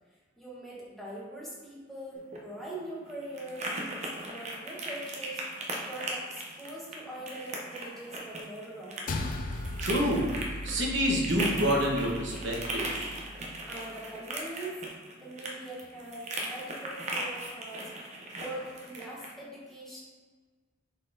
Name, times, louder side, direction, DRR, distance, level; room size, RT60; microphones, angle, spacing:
voice 1, 0.4-9.2 13.7-14.9 15.2-20.0, right 1 dB, ahead, -6 dB, 1.0 m, -42 dB
sound 1, 2.1-19.3, right 1 dB, 35° right, 0.6 m, -38 dB
sound 2, 9.1-13.6, left 1 dB, 45° left, 0.4 m, -38 dB
voice 2, 9.5-10.2 10.6-13.1, equal, 70° right, -2 dB, 1.0 m, -28 dB
5.2 x 3.9 x 2.6 m, 1.5 s
head